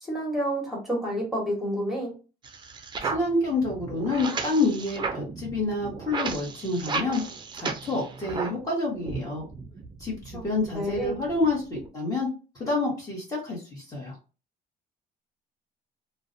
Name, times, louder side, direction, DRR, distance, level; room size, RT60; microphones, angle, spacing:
voice 1, 0.0-2.1 10.3-10.4 10.7-11.2, equal, ahead, -3 dB, 1.1 m, -29 dB
sound 1, 2.4-8.7 9.0-11.9, right 4 dB, 25° right, 0.4 m, -35 dB
voice 2, 3.0-7.2 7.5-9.4 10.0-12.3 12.6-14.2, left 2 dB, 20° left, -5 dB, 1.0 m, -28 dB
2.4 x 2.1 x 2.5 m, 0.33 s
cardioid pair, 110°, 17 cm